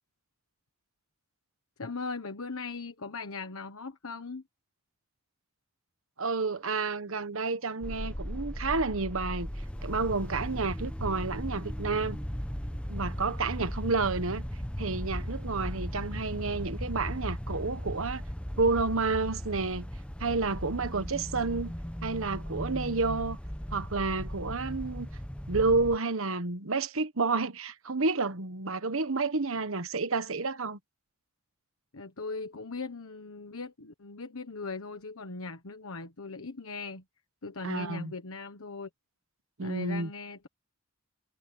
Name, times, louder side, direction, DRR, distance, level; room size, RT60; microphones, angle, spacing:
voice 1, 1.8-4.4 31.9-37.0 37.4-38.9 39.6-40.5, left 3 dB, 85° left, 1.3 m, -39 dB
voice 2, 6.2-9.5 9.8-12.2 12.9-14.4 14.8-18.2 18.6-19.9 20.2-21.7 22.0-23.4 23.7-25.1 25.5-30.8 37.6-38.1 39.6-40.1, right 3 dB, 75° right, 1.3 m, -30 dB
sound 1, 7.8-26.0, equal, 5° left, 1.0 m, -37 dB
head